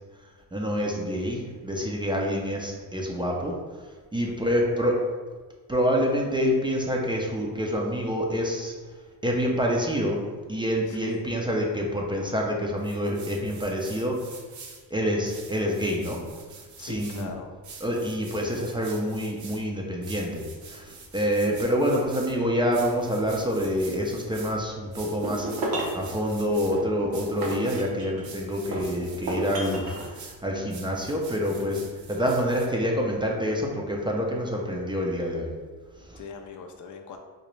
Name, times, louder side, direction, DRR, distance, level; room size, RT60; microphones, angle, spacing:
voice 1, 0.5-5.0 5.7-8.7 9.2-10.2 10.5-14.2 14.9-16.2 16.8-17.3 17.8-31.8 32.1-35.5 36.0-36.2, equal, 15° right, -1 dB, 0.4 m, -27 dB
voice 2, 4.3-4.6 10.9-11.2 16.8-17.6 36.1-37.2, left 5 dB, 50° left, 5 dB, 0.4 m, -41 dB
sound 1, 12.8-14.8 15.3-17.2 17.6-19.6 20.0-22.3 22.7-24.5 24.9-26.7 27.1-27.9 28.2-30.3 30.7-32.7, right 5 dB, 50° right, 0.7 m, -46 dB
sound 2, 25.0-26.0 26.7-28.3 28.7-30.1, right 1 dB, 75° right, 0.9 m, -31 dB
3.8 x 2.1 x 3.1 m, 1.4 s
cardioid pair, 95°, 38 cm